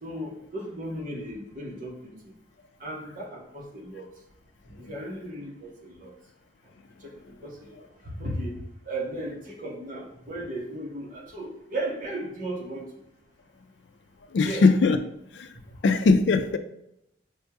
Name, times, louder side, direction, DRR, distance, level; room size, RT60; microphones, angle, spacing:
voice 1, 0.0-2.3 2.8-4.1 4.8-6.1 7.0-7.7 8.0-12.9 14.4-14.6, right 1 dB, 50° right, -2 dB, 1.0 m, -36 dB
voice 2, 14.3-15.0 15.3-15.5 15.8-16.6, left 4 dB, 80° left, 9 dB, 0.4 m, -20 dB
6.1 x 2.3 x 2.9 m, 0.79 s
head